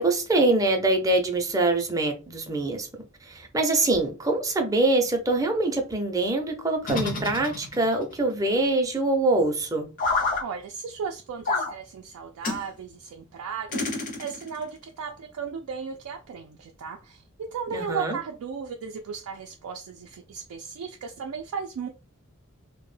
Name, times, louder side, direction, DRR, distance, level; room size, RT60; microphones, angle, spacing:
voice 1, 0.0-2.9 3.2-9.9 17.7-18.2, right 2 dB, 15° right, 0.5 m, -24 dB
sound 1, 6.8-8.0 10.0-10.4 11.4-11.7 12.4-12.6 13.7-14.6, left 3 dB, 40° left, 0.5 m, -28 dB
voice 2, 10.4-21.9, right 6 dB, 85° right, 0.3 m, -36 dB
2.1 x 2.1 x 3.1 m
head